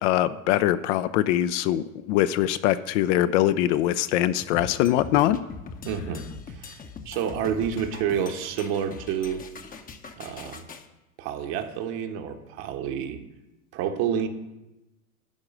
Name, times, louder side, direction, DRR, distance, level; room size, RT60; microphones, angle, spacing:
voice 1, 0.0-5.4, left 13 dB, 50° left, 13 dB, 0.6 m, -23 dB
sound 1, 4.4-10.9, left 5 dB, 20° left, 0.8 m, -41 dB
voice 2, 5.8-6.8 7.0-9.4 10.2-10.7 11.2-13.2 13.7-14.3, right 8 dB, 50° right, 6 dB, 1.3 m, -29 dB
11.5 x 4.8 x 7.6 m, 1.0 s
hypercardioid pair, 95°, 45 cm